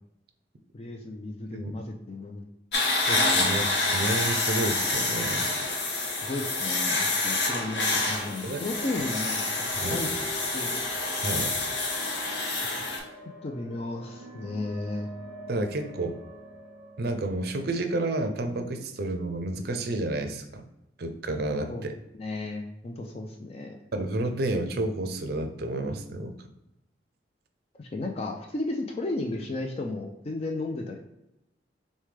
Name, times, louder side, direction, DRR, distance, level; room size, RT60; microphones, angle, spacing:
voice 1, 0.7-2.4 2.9-3.5 6.2-9.4 9.9-10.3 10.5-10.8 13.4-15.1 21.7-21.9 22.2-23.8 27.8-31.0, left 2 dB, 35° left, 2 dB, 0.4 m, -34 dB
sound 1, 2.7-13.0, left 2 dB, 60° left, 1.0 m, -27 dB
voice 2, 3.0-3.6 3.9-5.5 8.4-8.6 9.8-10.0 11.2-11.5 15.5-16.2 17.0-20.7 21.0-21.9 23.9-26.4, right 2 dB, 55° right, 7 dB, 0.5 m, -30 dB
sound 2, 7.5-19.2, right 1 dB, 15° right, 1.2 m, -46 dB
6.5 x 2.2 x 3.3 m, 0.88 s
head